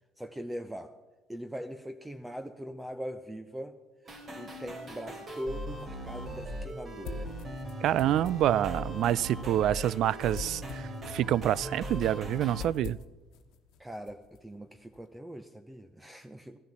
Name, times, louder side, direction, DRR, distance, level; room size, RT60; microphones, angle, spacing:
voice 1, 0.2-1.0 1.3-3.8 4.0-7.3 13.8-16.6, equal, 10° right, 9 dB, 0.8 m, -41 dB
sound 1, 4.0-12.6, equal, 40° right, 3.3 m, -39 dB
sound 2, 5.4-15.2, left 7 dB, 70° left, 1.2 m, -50 dB
voice 2, 7.8-13.0, right 12 dB, 60° right, 23 dB, 0.4 m, -27 dB
15.0 x 10.5 x 7.2 m, 1.2 s
supercardioid pair, 85°, 0 cm